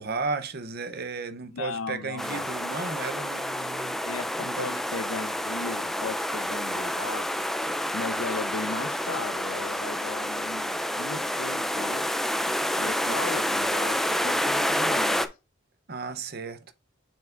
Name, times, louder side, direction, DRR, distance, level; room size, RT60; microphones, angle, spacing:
voice 1, 0.0-4.1 4.4-4.8 15.9-16.6, right 4 dB, 50° right, 0.7 m, -34 dB
voice 2, 1.5-2.5 4.0-7.4 7.9-12.1 12.8-15.3, left 4 dB, 75° left, 0.7 m, -37 dB
sound 1, 2.2-15.3, equal, ahead, 0.4 m, -28 dB
7.1 x 5.9 x 2.5 m
head